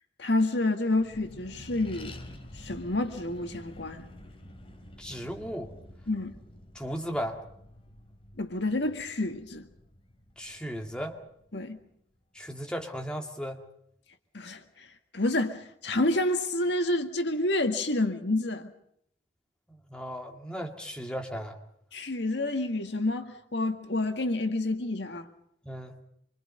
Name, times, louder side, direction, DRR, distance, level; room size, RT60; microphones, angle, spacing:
voice 1, 0.2-2.2 2.5-4.0 6.1-6.4 8.4-9.7 11.5-11.8 14.3-14.9 15.1-18.7 21.9-25.3, left 2 dB, 65° left, 1.9 m, -29 dB
Accelerating revving vroom, 0.9-11.8, left 1 dB, 30° left, 3.1 m, -49 dB
voice 2, 5.0-5.7 6.7-7.4 10.4-11.2 12.3-13.6 19.7-21.6 25.6-26.0, equal, 5° left, 2.3 m, -36 dB
26.0 x 25.0 x 5.5 m
head